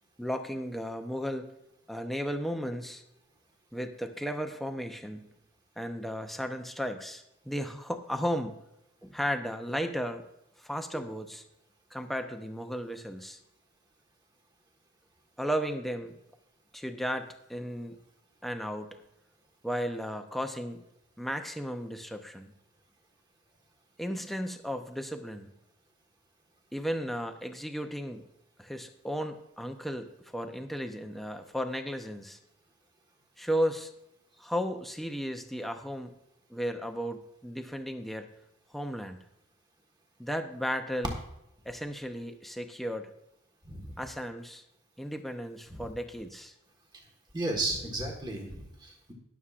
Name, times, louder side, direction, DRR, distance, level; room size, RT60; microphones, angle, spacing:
voice 1, 0.2-1.5 1.9-3.0 3.7-5.3 5.8-8.6 9.0-10.2 10.6-11.4 11.9-13.4 15.4-16.2 16.7-18.0 18.4-19.0 19.6-20.8 21.2-22.5 24.0-25.5 26.7-28.3 28.6-32.4 33.4-33.9 34.4-36.1 36.5-38.3 38.7-39.2 40.2-41.1 41.7-43.1 44.0-44.6 45.0-46.5, equal, ahead, 6 dB, 0.7 m, -34 dB
voice 2, 43.7-44.0 45.7-45.9 47.3-49.1, right 2 dB, 20° right, 1 dB, 1.5 m, -34 dB
20.5 x 7.2 x 2.5 m, 0.85 s
head